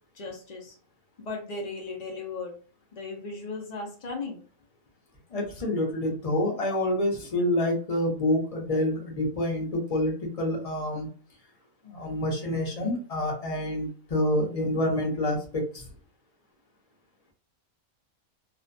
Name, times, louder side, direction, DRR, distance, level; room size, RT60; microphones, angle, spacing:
voice 1, 0.2-0.7 1.2-2.5 2.9-4.4, left 3 dB, 90° left, 0 dB, 0.3 m, -36 dB
voice 2, 5.3-11.1 11.8-15.8, left 1 dB, 40° left, 0 dB, 0.6 m, -27 dB
2.5 x 2.1 x 2.5 m, 0.39 s
omnidirectional pair, 1.5 m